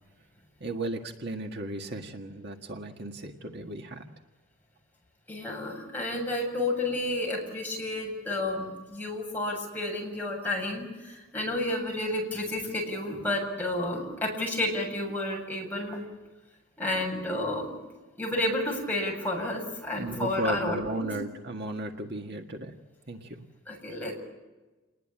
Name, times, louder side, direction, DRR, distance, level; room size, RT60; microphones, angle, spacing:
voice 1, 0.6-4.0 20.0-22.7 23.1-23.3, right 1 dB, 50° right, 3 dB, 1.7 m, -35 dB
voice 2, 5.3-16.0 16.8-17.8 18.2-21.1 23.7-24.2, left 1 dB, 10° left, -2 dB, 7.8 m, -31 dB
29.0 x 20.5 x 8.8 m, 1.2 s
head